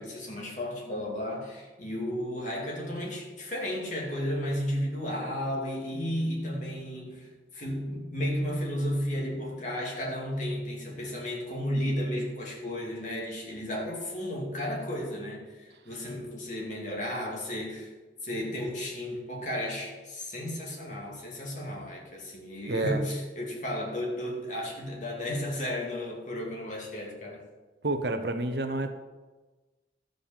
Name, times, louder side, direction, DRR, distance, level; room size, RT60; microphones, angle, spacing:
voice 1, 0.0-17.9 18.2-27.4, equal, 45° left, -2 dB, 2.5 m, -33 dB
voice 2, 22.7-23.0 27.8-29.0, right 2 dB, 65° right, 8 dB, 0.9 m, -29 dB
13.0 x 5.3 x 7.3 m, 1.2 s
head